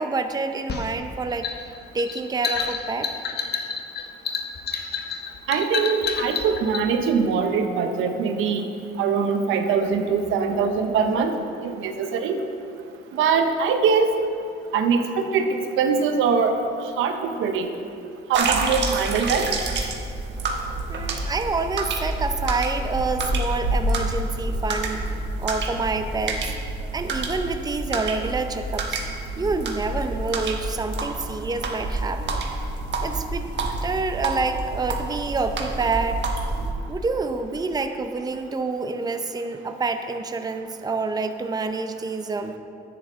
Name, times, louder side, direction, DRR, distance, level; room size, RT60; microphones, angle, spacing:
voice 1, 0.0-1.5 1.9-3.1 20.9-25.0 25.4-26.4 26.9-29.0 29.4-32.5 33.0-33.4 33.8-36.2 36.9-42.6, right 3 dB, 20° right, 7 dB, 0.6 m, -27 dB
sound 1, 0.7-6.9, left 6 dB, 55° left, 0.9 m, -29 dB
voice 2, 5.5-8.6 9.0-11.4 11.6-12.4 13.1-14.1 14.7-16.6 17.0-17.7 18.3-19.5, right 5 dB, 85° right, 6 dB, 0.8 m, -22 dB
sound 2, 18.3-36.7, right 2 dB, 65° right, 1.2 m, -28 dB
10.5 x 8.6 x 3.6 m, 2.5 s
cardioid pair, 90°, 20 cm